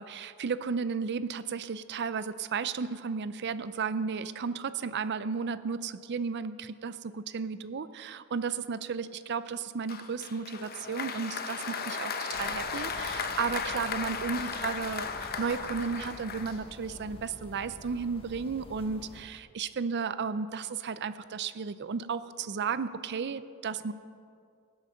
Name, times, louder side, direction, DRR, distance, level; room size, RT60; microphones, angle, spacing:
voice 1, 0.0-23.9, right 5 dB, 50° right, 14 dB, 0.5 m, -34 dB
Applause, 9.9-17.0, left 5 dB, 45° left, 0.8 m, -36 dB
sound 1, 12.3-19.3, left 1 dB, 25° left, 1.2 m, -49 dB
17.5 x 8.0 x 6.6 m, 2.3 s
head